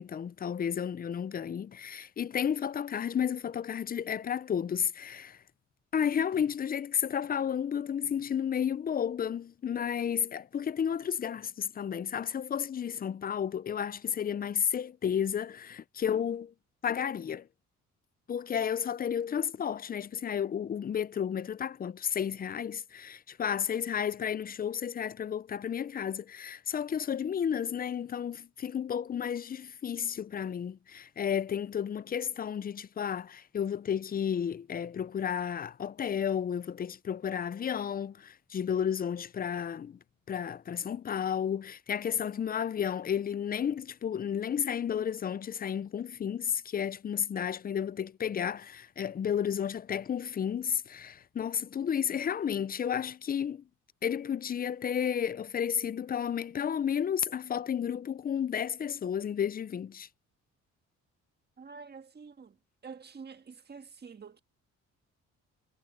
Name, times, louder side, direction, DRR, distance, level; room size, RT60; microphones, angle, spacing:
voice 1, 0.0-5.4 5.9-16.5 16.8-17.5 18.3-40.0 40.3-53.6 54.0-60.1, left 8 dB, 30° left, 0.4 m, -32 dB
voice 2, 61.6-62.6 62.8-64.4, right 5 dB, 35° right, 1.7 m, -47 dB
cardioid pair, 90°, 30 cm